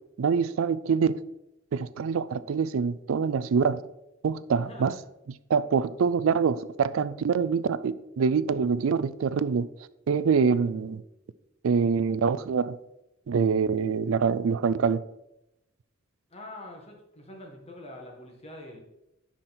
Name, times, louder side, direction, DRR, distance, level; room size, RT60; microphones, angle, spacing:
voice 1, 0.2-1.1 1.7-3.8 4.2-4.9 5.5-9.7 10.1-11.0 11.6-12.8 13.3-15.0, right 6 dB, 80° right, 0.4 m, -25 dB
voice 2, 4.6-5.0 16.3-18.8, left 1 dB, 30° left, 1.8 m, -44 dB
9.9 x 6.1 x 4.3 m
head